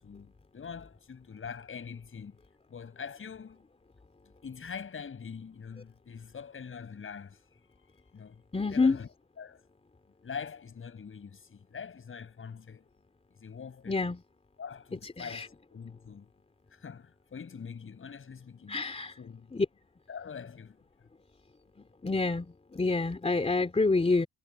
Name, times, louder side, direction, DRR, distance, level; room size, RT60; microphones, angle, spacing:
voice 1, 0.0-2.4 2.7-3.7 4.4-7.4 8.1-8.4 8.7-9.1 9.4-9.6 10.2-12.9 13.4-14.0 14.6-16.3 16.7-18.8 19.2-19.5 20.1-20.8, left 6 dB, 45° left, 7.1 m, -44 dB
voice 2, 8.5-9.0 13.9-14.2 15.0-15.5 18.7-19.2 19.5-19.7 22.0-24.3, left 3 dB, 20° left, 3.0 m, -27 dB
cardioid pair, 90°, 30 cm